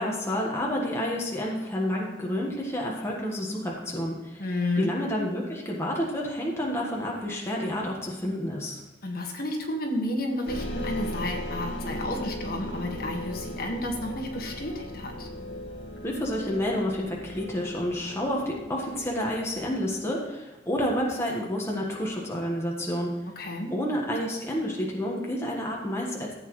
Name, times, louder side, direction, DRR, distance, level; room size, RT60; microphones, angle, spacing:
voice 1, 0.0-4.4 4.8-8.8 16.0-23.1 23.7-26.3, equal, 15° left, -2 dB, 1.4 m, -29 dB
voice 2, 4.4-4.9 9.0-15.3 23.3-23.7, left 1 dB, 50° left, 1 dB, 1.6 m, -31 dB
sound 1, 10.5-20.2, left 1 dB, 85° left, 1.8 m, -38 dB
14.5 x 8.3 x 3.2 m, 1.1 s
head